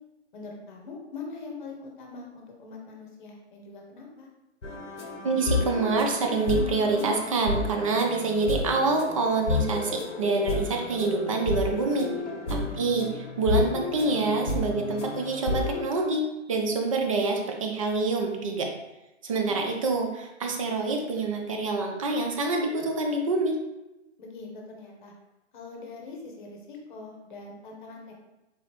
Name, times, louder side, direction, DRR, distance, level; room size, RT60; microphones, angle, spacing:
voice 1, 0.3-4.3 12.6-12.9 19.3-19.6 24.2-25.1 25.5-28.1, left 4 dB, 45° left, 0 dB, 1.0 m, -43 dB
sound 1, 4.6-15.8, left 3 dB, 90° left, 0.7 m, -31 dB
voice 2, 5.2-12.1 12.5-16.2 16.5-18.7 19.2-23.6, right 3 dB, 30° right, 2 dB, 0.5 m, -26 dB
4.0 x 2.8 x 2.9 m, 0.98 s
figure-of-eight pair, 135°, 35 cm